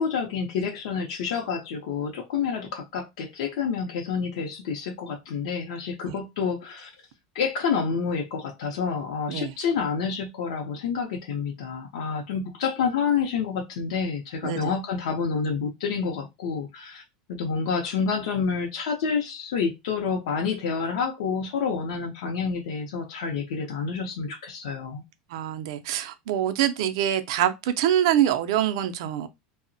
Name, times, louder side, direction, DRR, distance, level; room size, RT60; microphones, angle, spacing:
voice 1, 0.0-6.9 7.3-17.0 17.3-25.0, left 6 dB, 80° left, 0.5 m, -28 dB
voice 2, 25.3-29.3, right 11 dB, 65° right, 0.4 m, -25 dB
2.7 x 2.0 x 2.6 m
supercardioid pair, 170°, 3 cm